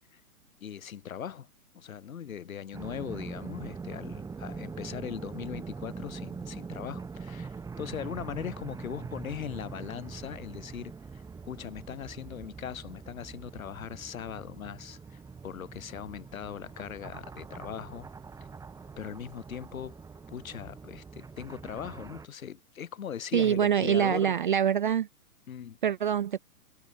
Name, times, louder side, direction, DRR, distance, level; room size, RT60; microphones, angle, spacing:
voice 1, 0.6-1.5 1.7-18.1 19.0-20.0 20.3-24.4 25.5-25.8, left 8 dB, 65° left, 4.1 m, -40 dB
sound 1, 2.7-22.3, right 5 dB, 5° right, 1.8 m, -43 dB
voice 2, 23.3-25.1 25.8-26.4, right 9 dB, 35° right, 0.4 m, -25 dB
figure-of-eight pair, 125°, 45 cm